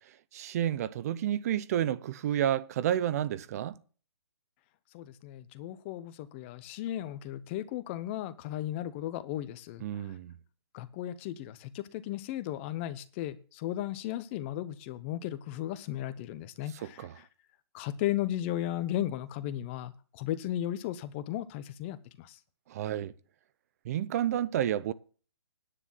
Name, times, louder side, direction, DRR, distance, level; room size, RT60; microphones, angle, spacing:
voice 1, 0.3-3.8 9.8-10.3 17.0-17.2 22.7-23.1 23.8-24.9, right 11 dB, 35° right, 0.7 m, -30 dB
voice 2, 4.9-10.1 10.7-17.3 17.7-22.4, left 13 dB, 25° left, 1.0 m, -35 dB
10.0 x 9.7 x 5.6 m
hypercardioid pair, 155°, 14 cm